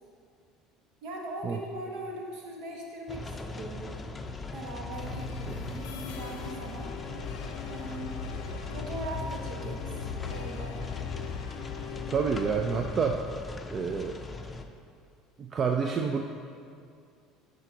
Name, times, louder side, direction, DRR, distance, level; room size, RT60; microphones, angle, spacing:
voice 1, 1.0-3.9 4.5-6.9 7.7-8.2 8.7-9.9 10.3-10.8, right 2 dB, 70° right, 0 dB, 1.2 m, -40 dB
sound 1, 3.1-14.6, left 3 dB, 25° left, 0.5 m, -39 dB
sound 2, 4.9-13.0, left 6 dB, 85° left, 0.4 m, -40 dB
voice 2, 12.1-13.2 13.7-14.2 15.4-16.2, right 6 dB, 40° right, 3 dB, 0.4 m, -28 dB
9.5 x 5.1 x 2.8 m, 2.3 s
hypercardioid pair, 80°, 0 cm